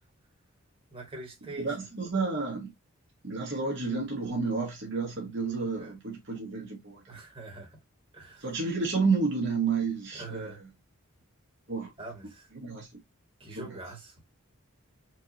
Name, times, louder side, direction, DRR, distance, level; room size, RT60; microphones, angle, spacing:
voice 1, 0.9-1.7 5.8-5.9 7.1-7.7 8.1-8.4 10.1-10.6 12.0-12.4 13.4-14.2, right 3 dB, 25° right, 1.7 m, -43 dB
voice 2, 1.6-2.7 3.2-7.0 8.4-10.6 11.7-11.9 12.5-12.9 13.5-13.8, right 4 dB, 55° right, 1.4 m, -30 dB
4.5 x 2.7 x 2.8 m
head